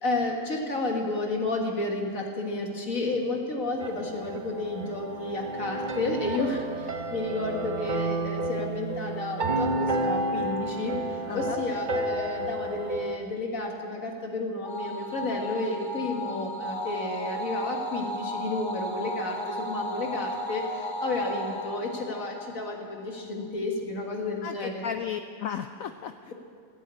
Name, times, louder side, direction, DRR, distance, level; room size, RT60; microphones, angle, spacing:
voice 1, 0.0-6.6 7.1-10.9 11.3-20.6 21.0-22.7 23.2-24.8, left 2 dB, 45° left, 1 dB, 2.1 m, -31 dB
sound 1, 3.8-13.2, right 2 dB, 70° right, 0.4 m, -31 dB
voice 2, 11.3-11.6 24.4-26.3, left 8 dB, 85° left, 8 dB, 0.7 m, -34 dB
sound 2, 14.6-23.2, equal, 20° left, 0.7 m, -35 dB
15.5 x 8.4 x 8.3 m, 2.2 s
omnidirectional pair, 2.0 m